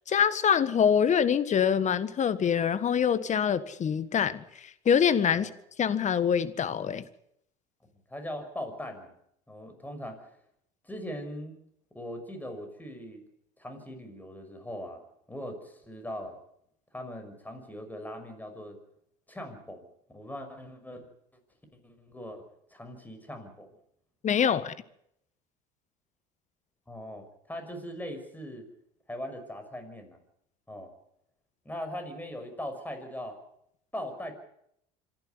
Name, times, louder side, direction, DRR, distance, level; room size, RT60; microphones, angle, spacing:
voice 1, 0.1-5.5 5.8-7.0 24.2-24.7, left 7 dB, 40° left, 1.6 m, -25 dB
voice 2, 8.1-9.1 9.5-10.4 10.8-11.6 11.9-13.2 13.6-15.0 15.3-16.4 16.9-18.8 19.3-21.1 21.8-23.7 26.9-28.7 29.1-30.2 30.7-30.9 31.6-33.4 33.9-34.3, equal, 10° left, 6.0 m, -40 dB
26.0 x 12.0 x 9.7 m
supercardioid pair, 85°, 19 cm